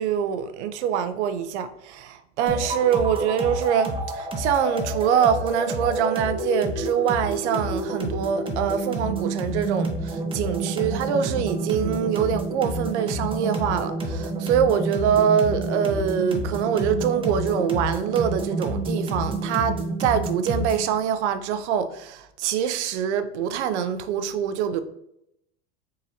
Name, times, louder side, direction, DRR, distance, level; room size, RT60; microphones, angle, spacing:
voice 1, 0.0-24.8, right 8 dB, 75° right, 0.6 m, -24 dB
sound 1, 2.5-20.9, right 2 dB, 15° right, 0.7 m, -29 dB
4.0 x 3.8 x 2.7 m
hypercardioid pair, 95°, 34 cm